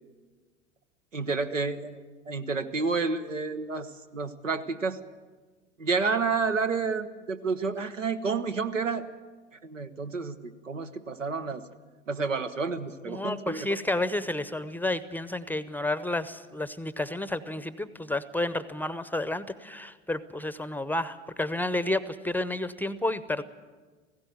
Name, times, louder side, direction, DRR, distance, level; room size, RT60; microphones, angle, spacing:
voice 1, 1.1-5.0 5.8-9.1 9.6-11.7 12.1-13.7, right 4 dB, 90° right, 8 dB, 1.0 m, -30 dB
voice 2, 13.1-23.4, left 2 dB, 5° left, 15 dB, 0.7 m, -31 dB
17.5 x 16.0 x 9.3 m, 1.4 s
figure-of-eight pair, 75°, 37 cm